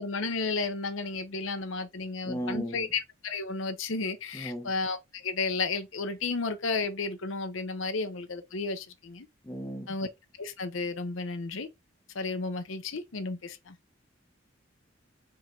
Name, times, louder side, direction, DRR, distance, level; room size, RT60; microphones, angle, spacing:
voice 1, 0.0-9.3 9.9-10.1 10.4-11.7 12.1-13.7, left 3 dB, 80° left, 0.8 m, -33 dB
voice 2, 2.2-2.9 4.3-4.7 9.4-9.9, equal, 10° left, 0.9 m, -35 dB
4.5 x 3.7 x 3.2 m
head